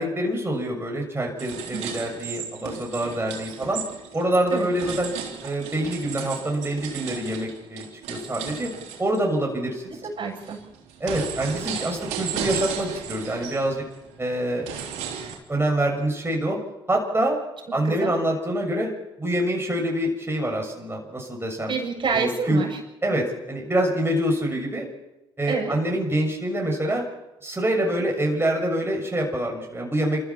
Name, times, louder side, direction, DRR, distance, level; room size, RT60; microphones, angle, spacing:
voice 1, 0.0-3.8 4.1-5.1 5.4-8.7 9.0-10.0 11.0-13.8 14.2-14.7 15.5-16.6 16.9-17.4 17.7-18.9 19.2-21.7 22.1-22.6 23.0-24.8 25.4-27.0 27.4-30.2, right 1 dB, 20° right, 0 dB, 6.8 m, -25 dB
sound 1, 1.4-9.2 9.8-15.4, right 8 dB, 80° right, 3.7 m, -35 dB
voice 2, 1.7-2.1 4.5-4.7 9.9-10.6 17.8-18.2 21.7-22.8 25.5-25.8, right 5 dB, 45° right, 0 dB, 7.4 m, -28 dB
28.0 x 14.5 x 7.3 m, 0.96 s
hypercardioid pair, 50°, 12 cm